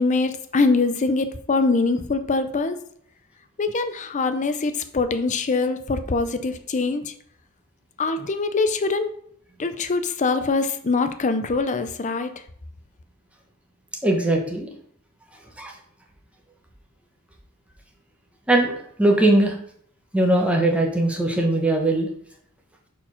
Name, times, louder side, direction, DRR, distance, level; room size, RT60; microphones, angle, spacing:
voice 1, 0.0-2.8 3.6-7.1 8.0-9.1 9.6-12.3, left 3 dB, 35° left, 9 dB, 0.5 m, -23 dB
voice 2, 14.0-14.7 15.6-15.7 18.5-18.7 19.0-19.6 20.1-22.1, right 1 dB, 5° right, 0 dB, 1.0 m, -20 dB
4.5 x 4.3 x 5.7 m, 0.63 s
head